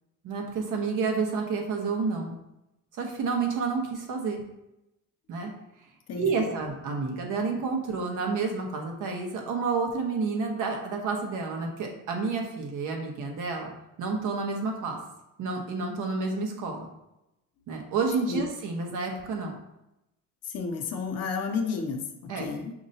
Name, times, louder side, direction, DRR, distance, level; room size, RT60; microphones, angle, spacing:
voice 1, 0.2-2.4 2.9-4.4 5.3-5.5 6.2-13.7 14.0-15.0 15.4-16.9 17.7-19.5 22.3-22.5, right 4 dB, 65° right, 1 dB, 1.1 m, -30 dB
voice 2, 6.1-6.5 18.3-18.4 20.5-22.7, left 5 dB, 50° left, 3 dB, 0.7 m, -32 dB
6.4 x 2.9 x 2.8 m, 0.89 s
cardioid pair, 145°, 33 cm